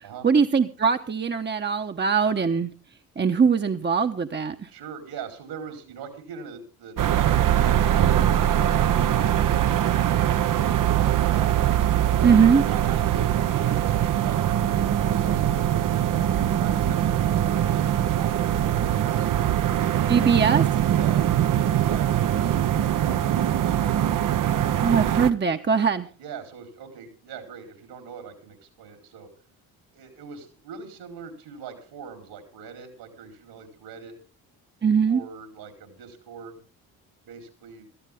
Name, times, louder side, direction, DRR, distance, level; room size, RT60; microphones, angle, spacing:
voice 1, 0.2-2.7 3.2-4.7 12.2-12.6 20.1-20.6 24.8-26.1 34.8-35.2, right 6 dB, 25° right, 6 dB, 1.1 m, -21 dB
voice 2, 4.7-9.5 9.7-11.6 12.2-12.4 12.7-15.7 16.0-19.3 20.9-23.9 26.2-29.3 29.9-34.2 35.1-36.6 37.2-37.9, right 6 dB, 75° right, 6 dB, 4.2 m, -42 dB
sound 1, 7.0-25.3, right 11 dB, 50° right, 0.9 m, -22 dB
18.0 x 14.0 x 3.6 m, 0.36 s
hypercardioid pair, 55°, 42 cm